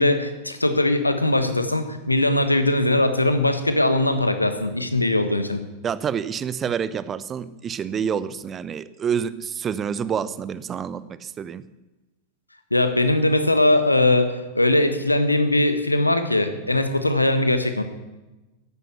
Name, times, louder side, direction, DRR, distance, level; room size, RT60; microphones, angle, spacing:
voice 1, 0.0-5.6 12.7-17.8, left 1 dB, 85° left, 9 dB, 1.3 m, -20 dB
voice 2, 5.8-11.6, right 7 dB, 25° right, 16 dB, 0.7 m, -28 dB
14.0 x 11.0 x 7.1 m, 1.1 s
figure-of-eight pair, 90°, 0 cm